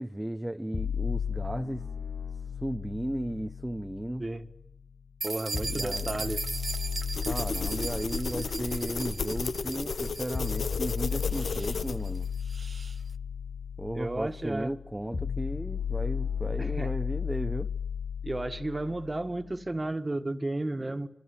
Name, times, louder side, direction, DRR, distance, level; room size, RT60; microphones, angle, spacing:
voice 1, 0.0-1.8 2.6-4.2 5.6-6.1 7.2-12.3 13.8-17.7, right 1 dB, 15° right, 0.9 m, -35 dB
sound 1, 0.7-4.7 5.5-19.6, left 7 dB, 60° left, 1.6 m, -35 dB
voice 2, 5.2-6.5 13.9-14.7 16.6-16.9 18.2-21.1, right 2 dB, 35° right, 1.9 m, -33 dB
sound 2, 5.2-13.0, right 3 dB, 60° right, 1.0 m, -39 dB
sound 3, 7.1-12.3, left 4 dB, 85° left, 1.0 m, -33 dB
27.0 x 24.0 x 8.6 m
cardioid pair, 40°, 0 cm